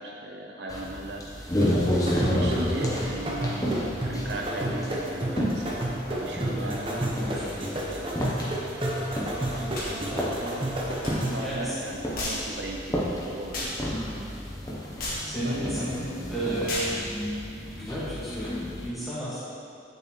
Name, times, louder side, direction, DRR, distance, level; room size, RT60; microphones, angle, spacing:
voice 1, 0.0-1.5 1.9-6.9 7.2-7.5 7.9-8.3 9.4-10.7 11.0-13.1 13.3-14.1 15.3-16.1, right 1 dB, 60° right, 0 dB, 0.6 m, -37 dB
sound 1, 0.7-18.9, equal, 20° left, 0.9 m, -32 dB
sound 2, 1.6-11.5, right 1 dB, 30° right, 0.9 m, -31 dB
voice 2, 6.6-7.7 11.4-11.8 13.9-14.2 15.3-17.1 17.6-19.4, right 1 dB, ahead, -11 dB, 1.9 m, -33 dB
sound 3, 9.7-9.9 11.0-11.1 12.1-12.5 13.5-13.8 15.0-15.3 16.7-17.0, left 1 dB, 50° left, 1.6 m, -32 dB
8.4 x 6.8 x 3.2 m, 2.5 s
head